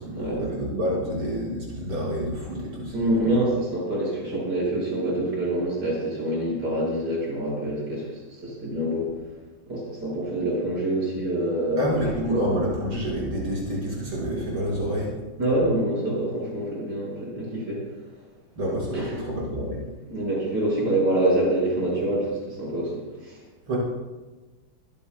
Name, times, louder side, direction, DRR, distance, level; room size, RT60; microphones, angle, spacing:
voice 1, 0.0-2.9 3.2-3.4 11.8-15.1 18.6-19.8 23.7-23.8, equal, 90° right, -5 dB, 6.5 m, -28 dB
voice 2, 2.9-9.1 9.7-12.4 15.4-17.8 18.9-19.2 20.1-23.4, right 1 dB, 50° right, -4 dB, 6.5 m, -26 dB
25.5 x 16.5 x 2.3 m, 1.2 s
omnidirectional pair, 2.3 m